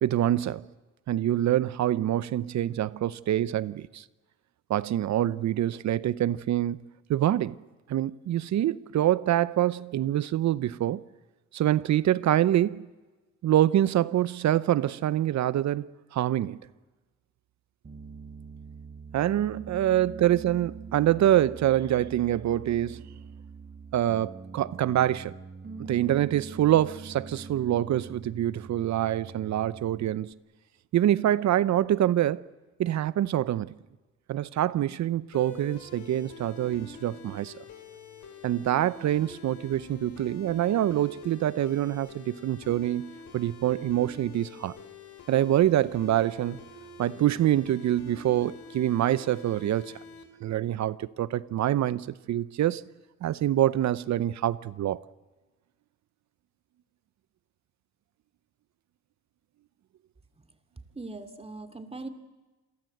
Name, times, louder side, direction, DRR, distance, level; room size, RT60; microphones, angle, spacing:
voice 1, 0.0-0.6 1.1-4.0 4.7-6.8 7.1-7.5 7.9-11.0 11.5-12.8 13.4-16.6 19.1-23.0 23.9-25.3 25.9-30.3 30.9-32.4 32.8-33.7 34.3-37.5 38.4-44.7 45.3-46.6 47.0-49.9 50.4-52.9 53.2-55.0, right 12 dB, 65° right, 0.8 m, -25 dB
Piano, 17.8-30.3, right 4 dB, 35° right, 3.2 m, -44 dB
sound 1, 35.3-50.2, left 4 dB, 70° left, 5.0 m, -47 dB
voice 2, 60.9-62.1, right 3 dB, 20° right, 2.8 m, -40 dB
28.0 x 22.5 x 7.9 m
cardioid pair, 90°, 30 cm